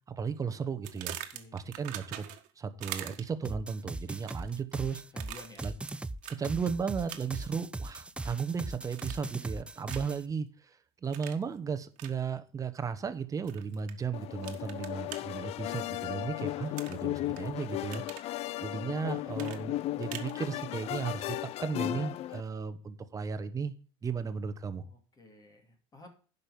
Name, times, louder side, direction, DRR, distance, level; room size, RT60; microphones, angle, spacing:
voice 1, 0.1-1.2 1.5-2.3 2.6-5.0 5.6-5.7 6.4-18.0 18.6-23.7 24.0-24.8, right 6 dB, 25° right, 10 dB, 1.1 m, -35 dB
sound 1, 0.8-2.5 2.8-3.5 4.1-4.6 5.2-5.9 6.2-6.4 7.1-7.5 7.9-8.5 8.9-9.4 9.9-10.2 11.1-11.4 12.0-12.1 13.5-13.9 14.4-15.2 16.8-17.4 17.7-18.3 19.4-20.3, right 13 dB, 65° right, 1.5 m, -43 dB
voice 2, 1.3-1.7 5.1-5.7 24.6-26.1, left 2 dB, 25° left, 4 dB, 2.5 m, -53 dB
sound 2, 3.4-10.2, right 2 dB, 10° right, 0.4 m, -39 dB
sound 3, 14.1-22.4, left 15 dB, 50° left, 0.4 m, -36 dB
10.0 x 5.5 x 6.9 m, 0.40 s
supercardioid pair, 105°, 14 cm